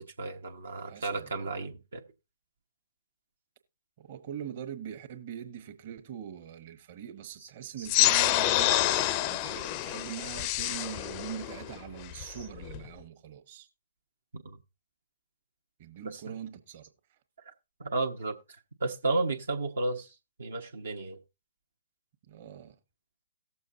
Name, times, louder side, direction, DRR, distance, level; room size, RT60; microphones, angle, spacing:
voice 1, 0.0-2.0 7.8-7.9 14.3-14.6 16.0-16.3 17.8-18.3 18.8-21.2, right 2 dB, 75° right, 1.0 m, -33 dB
voice 2, 0.9-1.5 4.0-8.8 9.2-13.7 15.8-17.2 22.3-22.8, right 9 dB, 50° right, 1.2 m, -42 dB
sound 1, 7.9-12.9, left 15 dB, 35° left, 0.4 m, -28 dB
18.0 x 7.0 x 2.7 m
hypercardioid pair, 130°, 0 cm